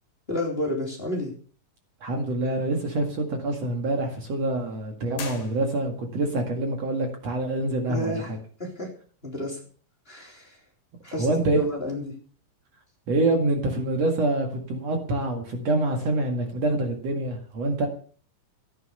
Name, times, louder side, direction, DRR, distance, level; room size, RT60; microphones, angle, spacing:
voice 1, 0.3-1.3 7.9-8.2 8.6-8.9 9.2-9.6 10.1-10.6 11.0-12.2, left 1 dB, 15° left, 0 dB, 3.9 m, -30 dB
voice 2, 2.0-8.4 11.2-11.6 13.1-17.9, right 2 dB, 55° right, 4 dB, 3.0 m, -26 dB
sound 1, 5.1-6.2, left 6 dB, 60° left, 3.3 m, -40 dB
15.0 x 9.7 x 6.7 m, 0.43 s
omnidirectional pair, 3.7 m